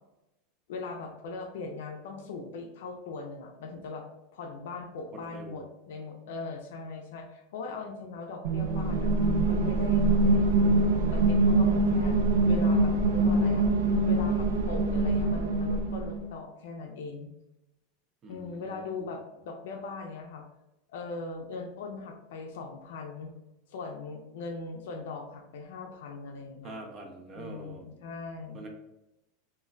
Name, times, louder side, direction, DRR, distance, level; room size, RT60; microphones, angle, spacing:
voice 1, 0.7-4.1 4.3-9.1 9.5-12.2 12.5-13.7 14.0-17.3 18.3-20.4 20.9-23.3 23.7-26.7 27.3-28.6, left 3 dB, 70° left, 3 dB, 0.4 m, -40 dB
voice 2, 5.1-5.6 18.2-19.2 26.6-27.9 28.5-28.7, right 2 dB, 20° right, 3 dB, 0.5 m, -45 dB
sound 1, 8.4-16.2, right 2 dB, 85° right, 0.4 m, -24 dB
2.2 x 2.1 x 3.7 m, 0.90 s
supercardioid pair, 170°, 0 cm